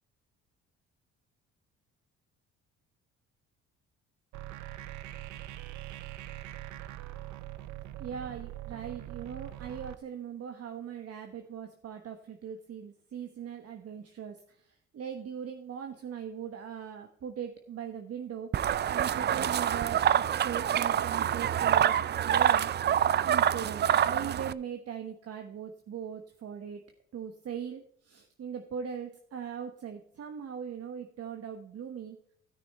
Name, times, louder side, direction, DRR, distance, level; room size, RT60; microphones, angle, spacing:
sound 1, 4.3-9.9, right 14 dB, 70° right, 0.7 m, -42 dB
voice 1, 8.0-18.5 18.9-22.0 22.2-22.7 23.2-26.8 27.1-32.2, right 8 dB, 55° right, 5 dB, 1.2 m, -40 dB
sound 2, 18.5-24.5, right 10 dB, 35° right, 0.4 m, -26 dB
13.0 x 6.2 x 4.3 m, 0.64 s
cardioid pair, 85°, 30 cm